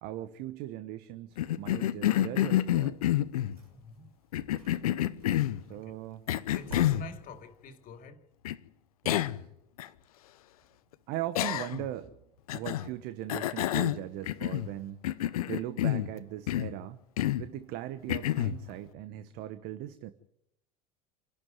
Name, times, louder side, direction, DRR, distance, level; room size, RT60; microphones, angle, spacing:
voice 1, 0.0-3.0 5.7-6.3 9.0-9.5 11.1-12.2 12.5-15.0 15.5-17.0 17.4-20.1, right 13 dB, 55° right, 1.1 m, -39 dB
Cough, 1.4-3.6 4.3-5.6 6.3-7.1 8.4-8.6 9.0-9.4 9.8-9.9 11.3-11.9 12.5-12.9 13.3-14.7 15.0-16.1 16.5-16.8 17.2-17.5 18.1-18.6, left 13 dB, 75° left, 0.8 m, -28 dB
sound 1, 3.5-4.0 4.4-5.5 6.4-7.4, right 1 dB, 90° right, 6.8 m, -48 dB
voice 2, 3.7-4.1 5.7-6.0 6.5-8.2, left 2 dB, 45° left, 2.7 m, -46 dB
27.5 x 12.0 x 9.5 m
hypercardioid pair, 75°, 19 cm